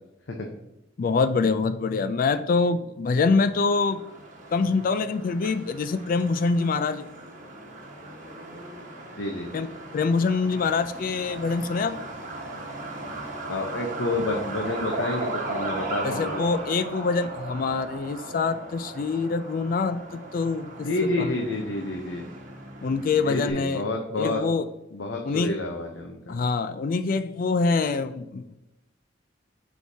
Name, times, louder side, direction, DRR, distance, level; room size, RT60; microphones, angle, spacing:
voice 1, 1.0-4.0 4.5-7.1 9.5-9.7 9.9-12.0 16.0-21.3 21.8-21.9 22.8-23.8 24.2-24.6 25.2-25.6 26.3-28.6, left 4 dB, 45° left, 11 dB, 0.3 m, -25 dB
Truck, 3.5-23.5, right 2 dB, 45° right, 1.4 m, -37 dB
voice 2, 9.2-9.5 13.5-16.4 20.8-22.2 23.2-24.4 24.9-26.4, left 2 dB, 90° left, 2 dB, 0.8 m, -29 dB
8.1 x 4.6 x 2.8 m, 0.93 s
head